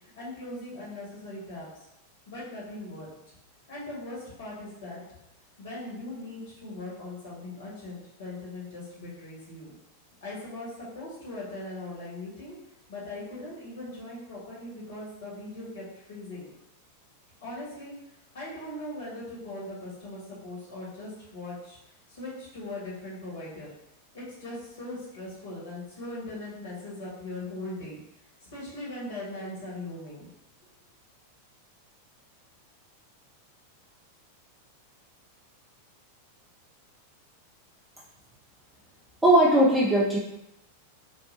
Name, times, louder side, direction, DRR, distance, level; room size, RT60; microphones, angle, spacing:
voice 1, 0.2-1.9 2.3-3.1 3.7-5.0 5.6-9.7 10.2-12.5 12.9-16.5 17.4-17.9 18.3-21.8 22.1-23.7 24.1-28.0 28.5-30.3, left 2 dB, 60° left, -6 dB, 1.4 m, -40 dB
voice 2, 39.2-40.2, right 1 dB, 5° right, -6 dB, 0.5 m, -19 dB
4.0 x 2.2 x 2.7 m, 0.86 s
figure-of-eight pair, 90°, 0 cm